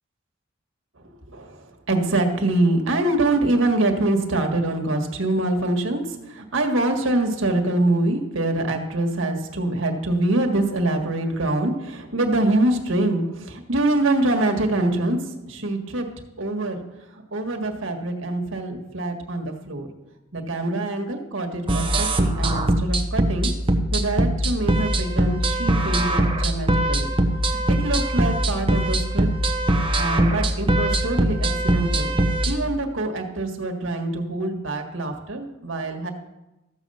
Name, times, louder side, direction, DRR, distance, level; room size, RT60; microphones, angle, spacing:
voice 1, 1.9-6.0 6.3-15.2 15.5-16.1 16.4-16.8 17.3-19.9 20.3-23.5 23.9-27.1 27.7-29.3 30.0-32.1 32.4-36.1, right 2 dB, 75° right, 3 dB, 1.7 m, -24 dB
sound 1, 21.7-32.5, right 1 dB, 25° right, 1.0 m, -21 dB
14.0 x 7.7 x 5.6 m, 0.98 s
head